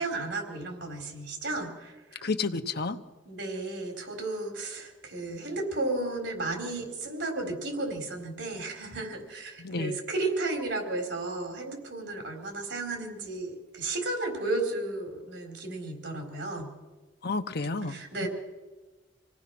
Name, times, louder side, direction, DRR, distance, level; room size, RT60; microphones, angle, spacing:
voice 1, 0.0-2.2 3.2-16.7 17.9-18.3, right 2 dB, 80° right, 2 dB, 4.4 m, -33 dB
voice 2, 2.2-3.0 9.6-10.0 17.2-18.3, left 3 dB, 60° left, 8 dB, 1.0 m, -31 dB
26.5 x 17.5 x 6.1 m, 1.2 s
head